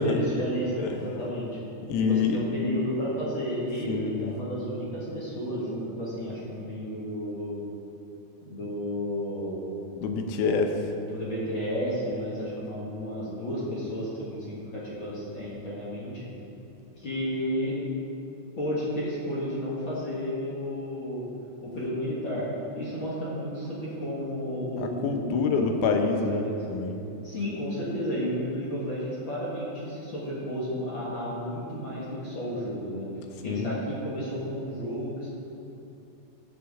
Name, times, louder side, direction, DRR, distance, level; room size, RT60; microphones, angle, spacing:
voice 1, 0.0-1.5 2.0-7.6 8.5-9.9 11.1-16.3 17.0-17.8 18.6-21.2 21.6-22.4 22.7-26.6 27.2-33.1 33.4-35.3, equal, 45° left, -8 dB, 2.1 m, -32 dB
voice 2, 1.9-2.4 3.9-4.3 10.0-10.8 24.8-27.1 33.5-33.8, left 5 dB, 90° left, 4 dB, 2.3 m, -27 dB
15.5 x 6.2 x 3.6 m, 2.7 s
omnidirectional pair, 3.6 m